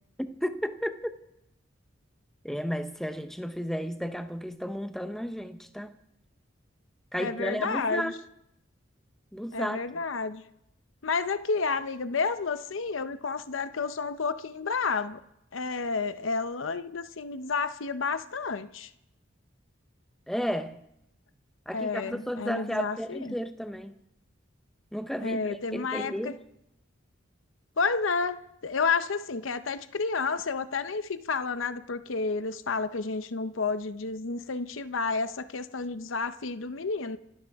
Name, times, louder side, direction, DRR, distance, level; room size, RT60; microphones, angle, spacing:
voice 1, 0.2-1.1 2.4-5.9 7.1-8.2 9.3-9.8 20.3-20.8 21.7-23.9 24.9-26.4, equal, ahead, 0.8 m, -33 dB
voice 2, 7.2-8.1 9.5-10.4 11.0-15.2 15.5-18.9 21.7-23.3 25.2-26.3 27.8-37.2, left 4 dB, 85° left, 0.8 m, -30 dB
26.5 x 13.0 x 3.6 m
head